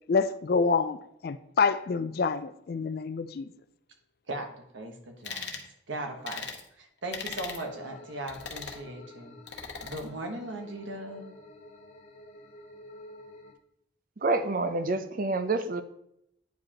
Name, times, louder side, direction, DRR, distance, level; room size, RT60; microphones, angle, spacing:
voice 1, 0.1-1.0 1.2-3.5, left 4 dB, 50° left, 13 dB, 0.3 m, -27 dB
voice 2, 4.7-5.5 5.9-6.5 6.8-11.3, right 1 dB, 85° right, 3 dB, 1.2 m, -38 dB
sound 1, 5.2-5.7 6.3-6.6 7.1-7.6 8.3-8.8 9.5-10.0, left 5 dB, 70° left, 0.9 m, -38 dB
sound 2, 7.2-13.5, left 1 dB, 35° left, 0.9 m, -50 dB
voice 3, 14.2-15.8, right 2 dB, 45° right, 9 dB, 0.5 m, -27 dB
9.2 x 4.8 x 2.9 m, 0.76 s
head